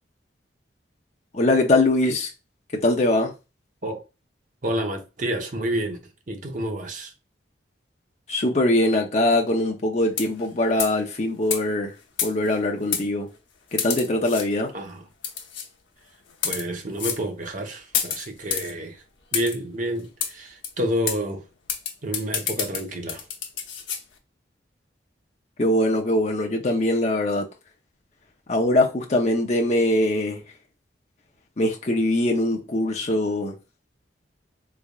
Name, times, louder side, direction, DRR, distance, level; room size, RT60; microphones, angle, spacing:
voice 1, 1.3-2.3 2.7-3.3 8.3-11.9 12.2-13.3 13.7-14.7 25.6-27.5 28.5-30.4 31.6-33.5, left 1 dB, 35° left, 0.6 m, -22 dB
voice 2, 4.6-6.0 6.3-7.1 14.7-15.0 16.4-19.0 19.3-21.4 22.0-23.3, right 1 dB, 45° right, 0.9 m, -29 dB
sound 1, 10.1-10.5 10.8-11.0 11.5-11.6 12.2-12.5 12.9-13.0 13.8-14.5 15.2-15.7 16.3-16.6 17.0-17.2 17.9-18.7 19.3-19.6 20.2-20.3 20.6-20.7 21.1-21.2 21.7-24.0, left 8 dB, 90° left, 0.8 m, -28 dB
3.7 x 3.3 x 2.3 m
head